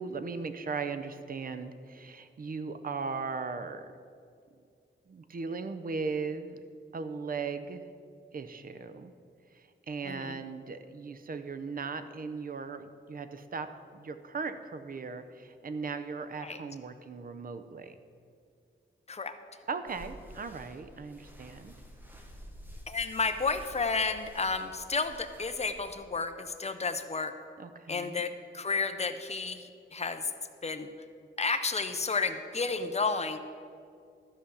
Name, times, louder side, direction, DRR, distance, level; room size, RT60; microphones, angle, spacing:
voice 1, 0.0-3.9 5.1-6.6 6.9-7.8 8.3-9.1 9.5-18.0 19.7-21.7 27.6-28.2, right 4 dB, 45° right, 10 dB, 0.6 m, -38 dB
voice 2, 10.0-10.4 16.4-16.6 19.1-19.4 22.9-27.3 27.9-30.3 30.6-30.9 31.4-33.4, left 4 dB, 30° left, 9 dB, 0.6 m, -32 dB
sound 1, 19.9-25.9, equal, 10° right, 1.1 m, -50 dB
13.0 x 5.1 x 7.0 m, 2.3 s
wide cardioid pair, 145°, 21 cm